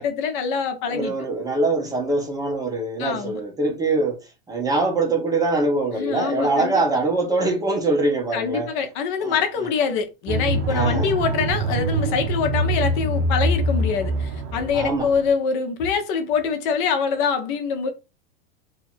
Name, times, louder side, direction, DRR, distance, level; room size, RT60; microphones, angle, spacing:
voice 1, 0.0-1.1 3.0-3.4 5.9-7.0 8.3-17.9, left 6 dB, 55° left, 0.9 m, -25 dB
voice 2, 0.9-4.2 4.5-8.7 9.2-9.4 10.7-11.1 14.7-15.1, right 2 dB, 10° right, 0.9 m, -23 dB
sound 1, 10.3-15.3, right 1 dB, 40° right, 0.8 m, -24 dB
2.8 x 2.7 x 4.3 m
supercardioid pair, 140°, 31 cm